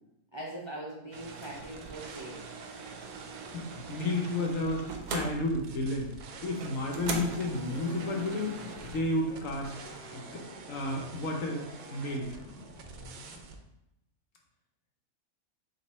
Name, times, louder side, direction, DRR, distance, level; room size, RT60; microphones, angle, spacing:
voice 1, 0.3-2.5, right 1 dB, 30° right, -4 dB, 0.5 m, -41 dB
sound 1, 1.1-13.6, right 4 dB, 70° right, 1.0 m, -48 dB
sound 2, 1.1-9.0, right 4 dB, 90° right, 1.2 m, -42 dB
voice 2, 3.5-6.1 6.4-8.6 8.8-11.6 11.9-12.3, left 2 dB, 65° left, 1 dB, 1.1 m, -32 dB
sound 3, 6.6-13.5, left 2 dB, 40° left, 1.3 m, -47 dB
3.9 x 3.1 x 4.1 m, 0.85 s
omnidirectional pair, 1.6 m